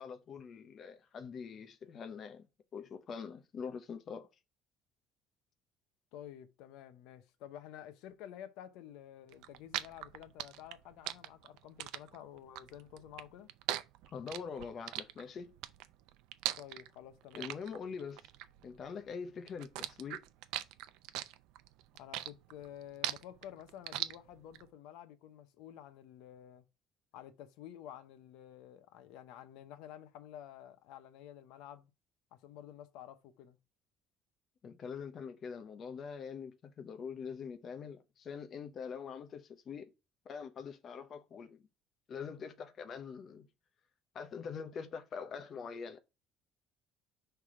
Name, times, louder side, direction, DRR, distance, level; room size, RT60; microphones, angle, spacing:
voice 1, 0.0-2.5 2.7-4.3 14.1-15.6 17.3-18.3 18.6-20.2 34.6-39.9 40.2-41.6 42.1-43.5 44.1-46.0, left 6 dB, 35° left, 0.7 m, -44 dB
voice 2, 6.1-13.5 16.6-17.5 22.0-26.6 27.1-31.9 32.3-33.6, left 11 dB, 80° left, 0.8 m, -51 dB
sound 1, 9.3-19.2 19.5-24.6, right 14 dB, 80° right, 0.5 m, -40 dB
5.8 x 3.4 x 4.7 m
cardioid pair, 160°, 0 cm